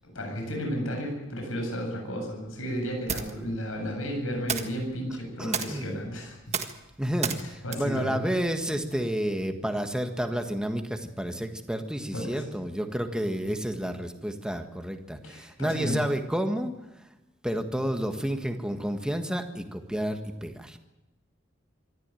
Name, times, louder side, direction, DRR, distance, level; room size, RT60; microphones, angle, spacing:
voice 1, 0.0-6.6 7.4-8.2 12.1-12.5 15.2-16.0, equal, 85° left, 2 dB, 7.9 m, -33 dB
sound 1, 2.5-9.2, right 6 dB, 35° right, 1.6 m, -37 dB
voice 2, 5.4-6.2 7.0-16.7 17.4-20.8, equal, 5° right, 5 dB, 1.6 m, -30 dB
24.5 x 14.0 x 9.2 m, 0.96 s
head